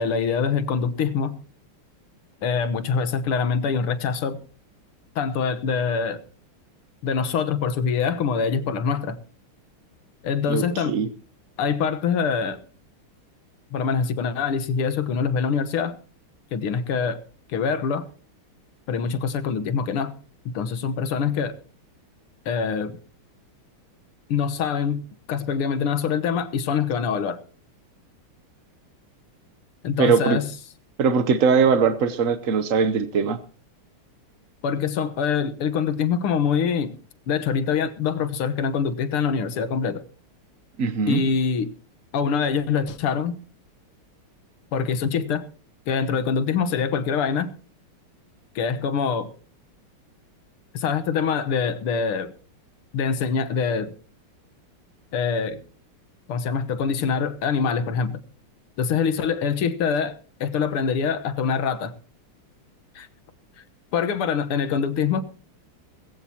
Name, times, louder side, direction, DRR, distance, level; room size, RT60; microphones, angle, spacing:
voice 1, 0.0-1.4 2.4-4.4 5.2-6.2 7.0-9.2 10.2-11.0 11.6-12.6 13.7-16.0 16.5-17.2 17.5-18.1 18.9-20.1 20.5-21.6 22.5-23.0 24.3-25.0 25.3-27.4 29.8-30.5 34.6-36.9 37.3-40.0 41.1-41.7 42.1-43.4 44.7-45.4 45.9-47.5 48.6-49.3 50.7-52.3 52.9-53.9 55.1-55.6 56.3-58.2 58.8-61.9 63.0-63.1 63.6-63.7 63.9-65.2, left 6 dB, 85° left, 9 dB, 2.1 m, -24 dB
voice 2, 10.5-11.1 30.0-30.4 31.0-33.4 40.8-41.2, right 5 dB, 55° right, 10 dB, 0.9 m, -20 dB
20.5 x 15.5 x 2.9 m, 0.39 s
omnidirectional pair, 2.3 m